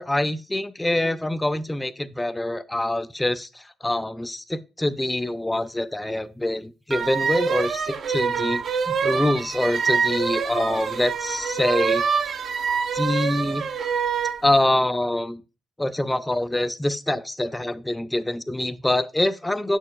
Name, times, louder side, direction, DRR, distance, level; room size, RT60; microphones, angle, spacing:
voice 1, 0.0-12.0 12.9-13.6 14.4-15.4 15.8-19.8, left 1 dB, 10° left, 0.4 m, -25 dB
sound 1, 6.9-14.4, right 6 dB, 55° right, 0.5 m, -25 dB
sound 2, 8.2-13.2, right 7 dB, 75° right, 2.0 m, -42 dB
6.8 x 6.4 x 2.2 m
cardioid pair, 90°, 0 cm